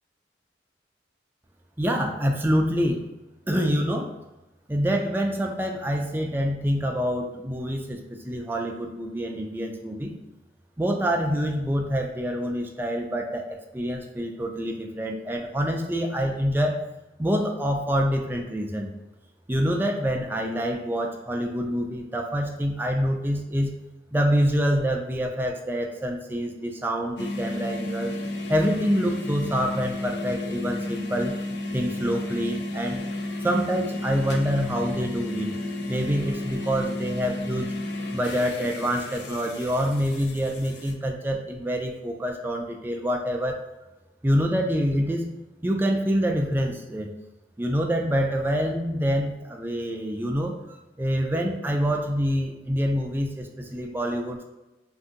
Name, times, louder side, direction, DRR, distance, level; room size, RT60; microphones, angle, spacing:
voice 1, 1.8-3.0 3.5-4.1 4.7-10.1 10.8-16.8 17.2-18.9 19.5-23.7 24.1-28.1 28.5-31.3 31.7-33.0 33.4-35.5 35.9-37.8 38.1-43.6 44.2-45.3 45.6-47.1 47.6-54.4, equal, 10° right, 2 dB, 0.3 m, -26 dB
sound 1, 27.2-40.9, left 2 dB, 70° left, 0.4 m, -32 dB
2.6 x 2.6 x 3.7 m, 1.0 s
head